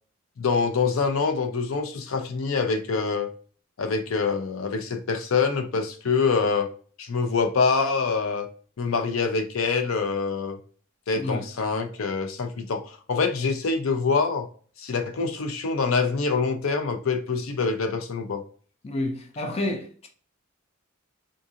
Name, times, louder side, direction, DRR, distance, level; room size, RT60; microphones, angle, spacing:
voice 1, 0.4-3.3 3.8-6.7 7.0-8.5 8.8-10.6 11.1-14.5 14.8-18.4, left 4 dB, 80° left, 0.5 m, -25 dB
voice 2, 11.2-11.5 18.8-20.1, left 1 dB, 30° left, 0.5 m, -29 dB
3.8 x 2.5 x 2.7 m
head